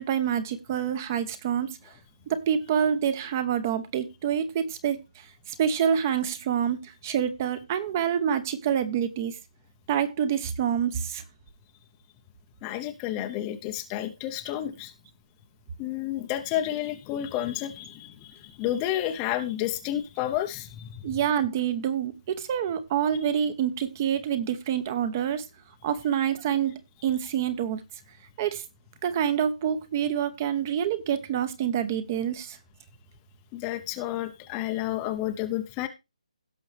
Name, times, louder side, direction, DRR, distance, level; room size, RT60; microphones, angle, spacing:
voice 1, 0.0-1.8 2.3-9.4 9.9-11.2 21.0-25.4 25.8-27.8 28.4-28.6 29.0-32.6, right 9 dB, 20° right, 0.8 m, -27 dB
voice 2, 12.6-14.9 15.8-21.0 33.5-35.9, left 12 dB, 15° left, 0.7 m, -31 dB
16.5 x 6.1 x 3.3 m
hypercardioid pair, 165°, 4 cm